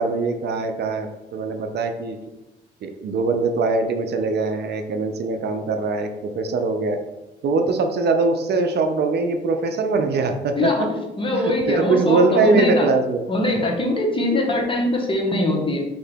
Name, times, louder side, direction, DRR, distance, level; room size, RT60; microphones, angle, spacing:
voice 1, 0.0-2.2 2.8-7.0 7.4-10.7 11.4-13.2, right 3 dB, 55° right, 6 dB, 0.5 m, -22 dB
voice 2, 10.6-12.9 13.3-15.8, left 1 dB, 25° left, 0 dB, 0.9 m, -22 dB
3.8 x 2.8 x 3.4 m, 1.0 s
cardioid pair, 90°, 20 cm